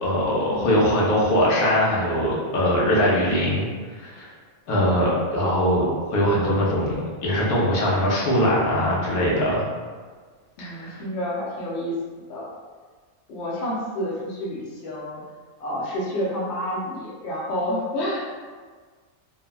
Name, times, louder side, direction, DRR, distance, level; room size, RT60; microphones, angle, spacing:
voice 1, 0.0-3.7 4.0-4.3 4.7-6.9 7.2-9.7 10.6-11.0, equal, 85° left, -5 dB, 1.2 m, -21 dB
voice 2, 10.6-12.0 12.3-12.5 13.3-15.2 15.6-18.4, equal, 60° left, -5 dB, 0.8 m, -29 dB
3.2 x 2.1 x 2.3 m, 1.5 s
omnidirectional pair, 1.5 m